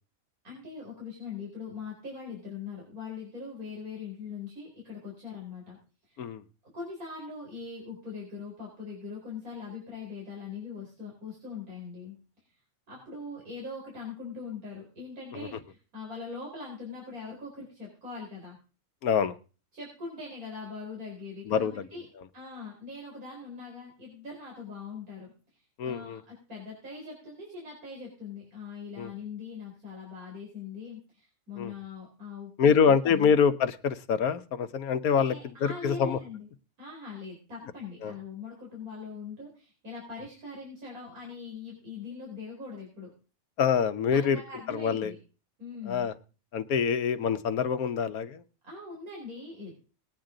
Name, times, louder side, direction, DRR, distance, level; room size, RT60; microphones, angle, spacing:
voice 1, 0.4-5.8 6.0-6.2 6.7-12.1 12.9-18.6 19.7-22.0 22.3-33.4 35.2-36.5 36.8-43.1 44.1-45.2 45.6-46.1 48.6-49.7, left 4 dB, 90° right, -3 dB, 4.9 m, -41 dB
voice 2, 19.0-19.4 21.5-21.9 25.8-26.2 29.0-29.1 31.6-31.7 32.6-35.3 35.6-36.2 38.0-38.1 43.6-44.4 44.7-45.1 45.9-46.1 46.5-48.4, left 6 dB, 85° left, 11 dB, 1.4 m, -25 dB
19.5 x 9.7 x 3.8 m, 0.35 s
omnidirectional pair, 1.5 m